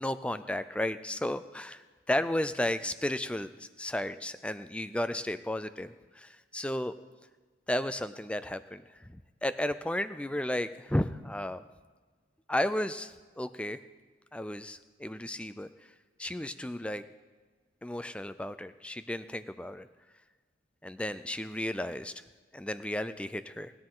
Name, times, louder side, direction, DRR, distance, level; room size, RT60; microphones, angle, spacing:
voice 1, 0.0-1.8 2.1-6.9 7.7-9.1 9.4-11.6 12.5-13.8 14.3-15.7 16.2-17.0 17.8-19.9 20.8-22.1 22.5-23.7, left 1 dB, 5° left, 12 dB, 0.4 m, -33 dB
19.5 x 10.5 x 3.8 m, 1.5 s
head